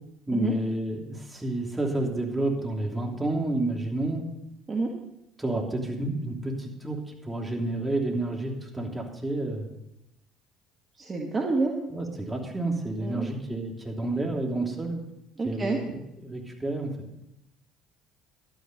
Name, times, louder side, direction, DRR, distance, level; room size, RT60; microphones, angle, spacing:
voice 1, 0.3-4.2 5.4-9.7 11.9-15.0 15.4-16.9, right 2 dB, 15° right, 0 dB, 3.0 m, -30 dB
voice 2, 11.0-11.7 13.0-13.3 15.4-15.8, right 3 dB, 30° right, 0 dB, 1.8 m, -28 dB
12.0 x 9.4 x 5.4 m, 0.85 s
hypercardioid pair, 60°, 0 cm